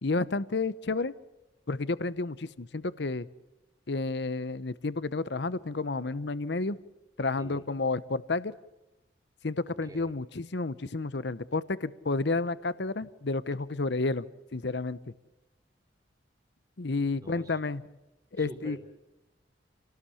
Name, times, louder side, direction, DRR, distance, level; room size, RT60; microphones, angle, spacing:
voice 1, 0.0-1.1 1.7-3.3 3.9-6.8 7.2-8.5 9.4-14.3 14.5-15.0 16.8-17.8 18.3-18.8, left 3 dB, 65° left, 17 dB, 0.8 m, -31 dB
voice 2, 9.7-10.2 17.2-17.6 18.4-18.8, right 1 dB, 20° right, 5 dB, 3.6 m, -46 dB
28.0 x 18.5 x 8.5 m, 0.98 s
head